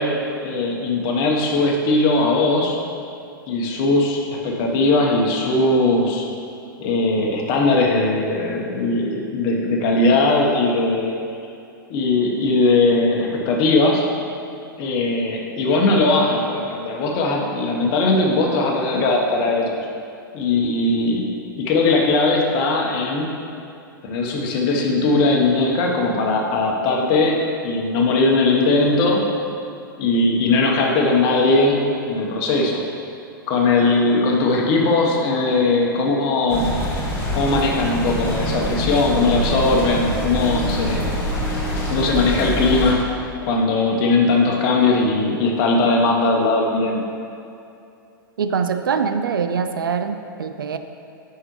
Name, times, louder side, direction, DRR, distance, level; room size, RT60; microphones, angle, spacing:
voice 1, 0.0-2.8 3.5-6.3 6.8-11.2 11.9-14.1 14.8-19.7 20.3-23.3 24.0-29.2 30.0-32.8 33.5-36.8 37.3-41.1 41.9-43.0 43.5-47.0, left 2 dB, 40° left, 0 dB, 1.0 m, -19 dB
sound 1, 36.5-42.9, equal, 20° left, 1.5 m, -25 dB
voice 2, 48.4-50.8, right 6 dB, 70° right, 9 dB, 0.4 m, -23 dB
7.8 x 5.7 x 3.1 m, 2.6 s
figure-of-eight pair, 100°, 12 cm